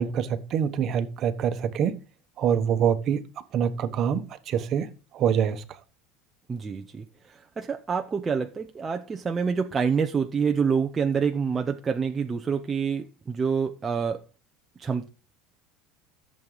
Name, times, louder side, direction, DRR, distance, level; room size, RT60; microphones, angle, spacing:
voice 1, 0.0-2.0 2.4-3.3 3.5-5.8, right 8 dB, 30° right, 1.1 m, -25 dB
voice 2, 6.5-14.2 14.8-15.1, right 6 dB, 15° right, 0.6 m, -27 dB
14.0 x 7.5 x 3.9 m
cardioid pair, 170°, 0 cm